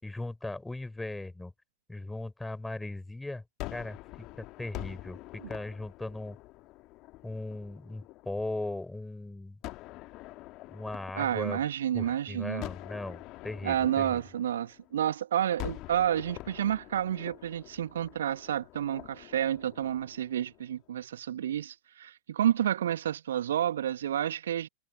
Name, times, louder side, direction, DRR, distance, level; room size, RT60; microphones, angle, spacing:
voice 1, 0.0-1.5 1.9-3.4 3.7-4.0 4.4-6.4 7.2-9.6 10.7-11.6 11.9-14.2, left 2 dB, 5° left, 4.8 m, -38 dB
Gunshot gunfire, 3.6-8.7 9.6-12.0 12.6-15.1 15.6-20.8, left 19 dB, 40° left, 1.9 m, -46 dB
voice 2, 11.1-12.6 13.6-24.7, right 10 dB, 60° right, 1.3 m, -30 dB
figure-of-eight pair, 90°, 0 cm